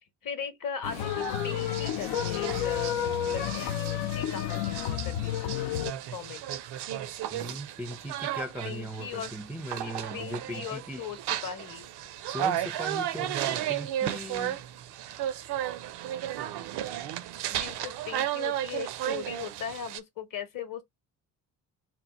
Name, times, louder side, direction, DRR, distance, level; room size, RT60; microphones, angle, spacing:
voice 1, 0.2-3.0 3.3-5.6 6.1-6.4 8.6-9.3 9.8-11.9 17.5-20.8, left 8 dB, 40° left, 1.0 m, -39 dB
sound 1, 0.8-5.9, left 11 dB, 70° left, 0.6 m, -31 dB
sound 2, 0.9-20.0, right 11 dB, 55° right, 0.6 m, -34 dB
voice 2, 7.3-11.0 12.3-14.6, equal, 5° right, 0.5 m, -38 dB
3.0 x 2.0 x 4.0 m
hypercardioid pair, 50°, 49 cm